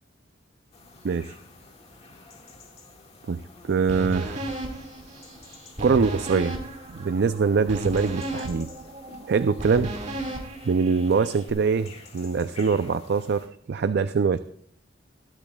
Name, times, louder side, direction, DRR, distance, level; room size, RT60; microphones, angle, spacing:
sound 1, 0.7-13.5, left 3 dB, 35° left, 1.7 m, -50 dB
voice 1, 1.0-1.4 3.3-4.5 5.8-6.6 6.9-8.7 9.3-9.9 10.6-14.4, right 5 dB, 60° right, 11 dB, 0.4 m, -23 dB
sound 2, 3.9-11.5, right 1 dB, 40° right, 2.0 m, -34 dB
20.0 x 12.0 x 2.3 m, 0.63 s
head